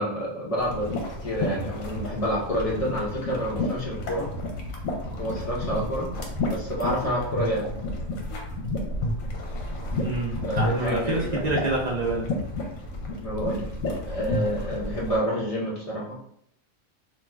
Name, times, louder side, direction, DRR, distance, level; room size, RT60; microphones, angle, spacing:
voice 1, 0.0-4.3 5.2-6.1 6.5-7.7 10.4-11.4 13.2-13.6 14.0-16.3, equal, 50° left, -4 dB, 0.4 m, -28 dB
sound 1, 0.6-15.2, left 1 dB, 75° left, 1.0 m, -31 dB
voice 2, 10.0-12.2, right 2 dB, 55° right, -4 dB, 0.4 m, -27 dB
2.5 x 2.3 x 3.1 m, 0.69 s
omnidirectional pair, 1.4 m